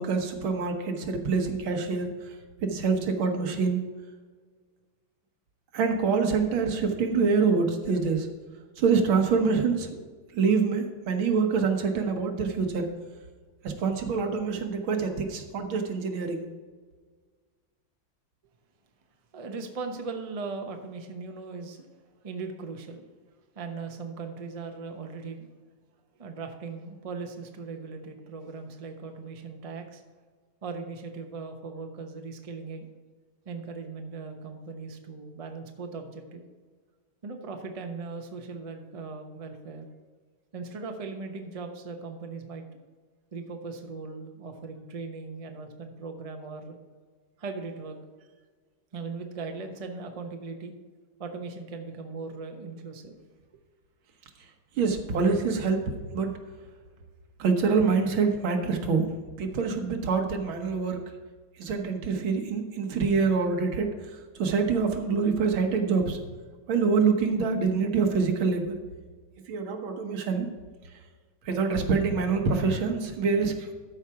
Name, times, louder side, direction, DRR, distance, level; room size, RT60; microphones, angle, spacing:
voice 1, 0.0-2.1 2.6-3.8 5.7-8.3 8.8-10.0 10.3-12.9 13.6-16.4 54.8-55.8 56.1-56.4 57.4-59.0 59.4-61.0 61.6-63.9 64.4-66.2 66.7-68.8 69.5-70.5 71.5-73.7, right 5 dB, 85° right, 5 dB, 2.0 m, -25 dB
voice 2, 19.3-21.9 22.2-23.0 23.5-25.5 26.2-30.0 30.6-32.9 33.4-36.5 37.2-39.8 40.5-42.6 43.3-46.8 47.4-48.0 48.9-50.7 51.2-53.2, right 4 dB, 30° right, 4 dB, 0.7 m, -38 dB
13.0 x 4.8 x 5.8 m, 1.5 s
omnidirectional pair, 2.2 m